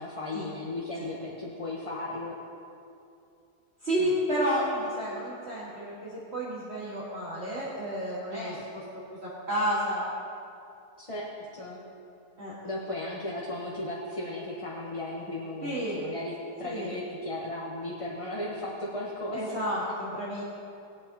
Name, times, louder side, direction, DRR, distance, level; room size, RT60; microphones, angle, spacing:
voice 1, 0.0-2.3 4.0-4.1 8.3-8.6 11.0-11.2 11.5-11.8 12.6-19.5, left 1 dB, 25° left, -5 dB, 1.1 m, -36 dB
voice 2, 3.8-8.8 9.2-10.0 12.4-12.5 15.6-16.0 16.7-16.9 19.3-20.4, equal, 40° right, -8 dB, 2.1 m, -31 dB
21.0 x 8.4 x 2.9 m, 2.6 s
omnidirectional pair, 1.7 m